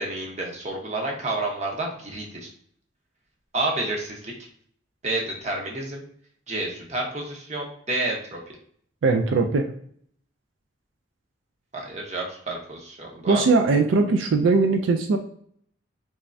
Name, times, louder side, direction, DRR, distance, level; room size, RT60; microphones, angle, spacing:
voice 1, 0.0-2.5 3.5-4.3 5.0-6.0 6.5-8.4 11.7-13.4, right 2 dB, 35° right, -1 dB, 0.8 m, -29 dB
voice 2, 9.0-9.7 13.3-15.2, right 3 dB, 85° right, 5 dB, 0.4 m, -20 dB
3.5 x 3.2 x 2.5 m, 0.62 s
head